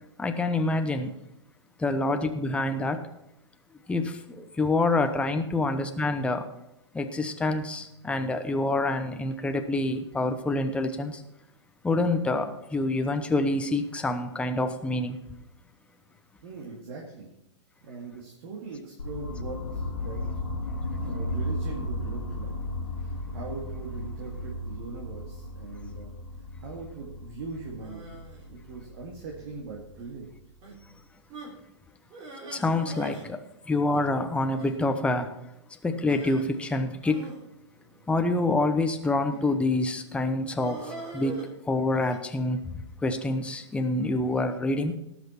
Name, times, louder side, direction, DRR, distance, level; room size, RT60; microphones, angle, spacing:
voice 1, 0.2-1.1 1.8-3.1 3.9-6.4 6.9-11.2 11.8-15.2 32.5-33.4 33.7-35.4 35.8-37.3 38.1-45.0, left 2 dB, 5° left, 0.9 m, -27 dB
voice 2, 16.4-17.3 17.8-20.2 21.0-22.5 23.0-26.2 26.6-30.3, right 4 dB, 50° right, 2.1 m, -41 dB
sound 1, 19.0-30.9, left 1 dB, 85° left, 1.6 m, -35 dB
sound 2, 27.8-28.5 29.2-29.6 29.9-30.1 30.6-30.8 31.3-31.6 32.1-33.3 33.5-33.6 33.9-34.0 34.5-34.8 36.1-36.4 37.0-38.4 39.2-39.6 40.6-42.2, right 2 dB, 30° right, 3.2 m, -42 dB
17.5 x 6.1 x 4.5 m
figure-of-eight pair, 105°, 15 cm